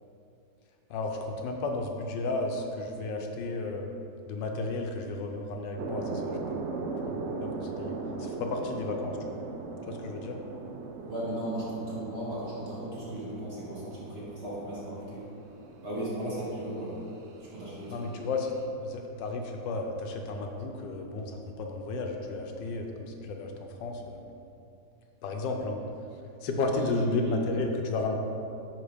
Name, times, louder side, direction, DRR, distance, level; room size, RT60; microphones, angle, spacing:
voice 1, 0.9-3.9 4.3-6.4 6.9-9.4 9.9-10.4 17.9-24.2 25.2-25.8 26.4-28.1, left 3 dB, 80° left, 3 dB, 1.4 m, -33 dB
sound 1, 5.8-18.7, right 3 dB, 70° right, 0.6 m, -39 dB
voice 2, 11.0-15.3 15.8-17.1 17.4-18.0 26.7-27.4, right 1 dB, 35° right, -8 dB, 2.2 m, -36 dB
9.8 x 3.9 x 5.1 m, 2.6 s
omnidirectional pair, 2.0 m